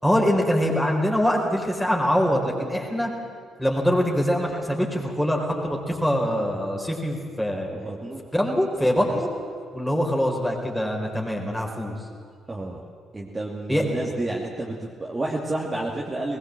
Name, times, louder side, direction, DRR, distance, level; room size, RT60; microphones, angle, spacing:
voice 1, 0.0-3.1 3.6-7.7 8.3-9.3 9.7-12.0 13.7-13.8, equal, 5° left, 0 dB, 4.3 m, -23 dB
voice 2, 7.7-8.2 9.0-9.2 12.5-12.8 13.1-16.4, right 2 dB, 25° right, -3 dB, 2.5 m, -30 dB
20.0 x 19.5 x 7.7 m, 2.1 s
figure-of-eight pair, 45°, 0 cm